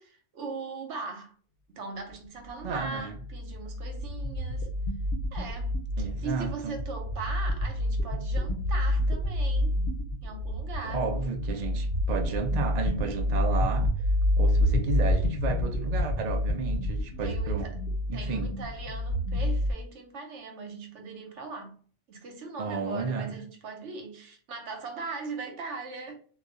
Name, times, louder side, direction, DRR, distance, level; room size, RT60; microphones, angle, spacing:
voice 1, 0.0-1.3 1.7-4.7 5.3-9.8 10.2-11.1 17.2-17.8 18.1-21.8 22.1-26.2, right 4 dB, 75° right, 1.1 m, -40 dB
sound 1, 2.6-19.7, left 1 dB, 55° left, 0.9 m, -28 dB
voice 2, 2.6-3.1 6.0-6.8 10.8-13.9 14.4-17.7 18.1-18.5 22.6-23.3, right 5 dB, 50° right, 0.5 m, -32 dB
2.9 x 2.3 x 3.7 m
omnidirectional pair, 1.2 m